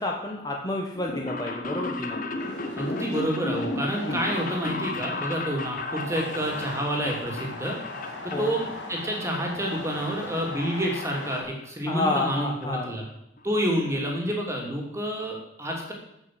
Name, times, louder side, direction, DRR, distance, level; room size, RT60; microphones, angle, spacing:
voice 1, 0.0-2.2 4.0-4.2 8.3-8.5 11.9-13.0, left 2 dB, 20° left, 0 dB, 1.3 m, -29 dB
sound 1, 0.9-8.7 9.0-9.7 10.0-11.1 11.3-11.4 12.3-12.4 12.6-12.7 13.0-13.1 13.4-13.6 14.0-14.1 14.3-14.4, left 2 dB, 45° left, 1.4 m, -34 dB
sound 2, 2.4-11.4, left 2 dB, 65° left, 3.5 m, -39 dB
voice 2, 2.8-7.8 8.2-13.0 13.4-15.9, equal, 15° right, 0 dB, 3.0 m, -29 dB
14.5 x 6.2 x 7.8 m, 0.81 s
head